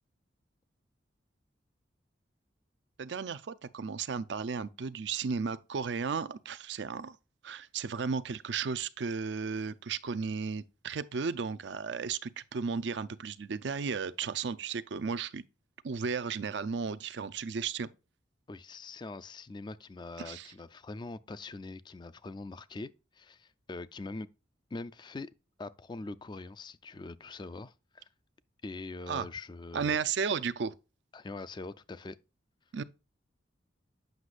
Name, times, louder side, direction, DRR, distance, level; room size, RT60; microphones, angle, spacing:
voice 1, 3.0-7.2 7.4-15.4 15.8-17.9 20.2-20.6 29.1-29.3 29.7-30.8 32.7-32.8, right 5 dB, 70° right, 0.5 m, -34 dB
voice 2, 18.5-24.3 24.7-25.3 25.6-28.0 28.6-30.0 31.1-32.2, left 3 dB, 25° left, 0.3 m, -43 dB
7.9 x 6.0 x 2.4 m
head